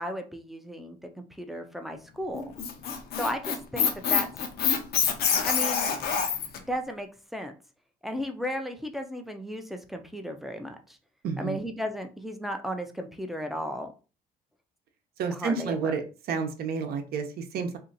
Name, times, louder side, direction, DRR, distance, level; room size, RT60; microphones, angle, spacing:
voice 1, 0.0-2.5 3.2-4.3 5.4-5.9 6.7-7.5 8.0-11.0 11.4-13.9 15.3-15.9, equal, ahead, 5 dB, 0.5 m, -35 dB
Squeak, 2.3-6.6, left 7 dB, 65° left, 0.7 m, -26 dB
voice 2, 11.2-11.6 15.2-16.0 16.3-17.8, right 5 dB, 65° right, 6 dB, 0.8 m, -30 dB
2.8 x 2.4 x 3.9 m, 0.34 s
cardioid pair, 110°, 17 cm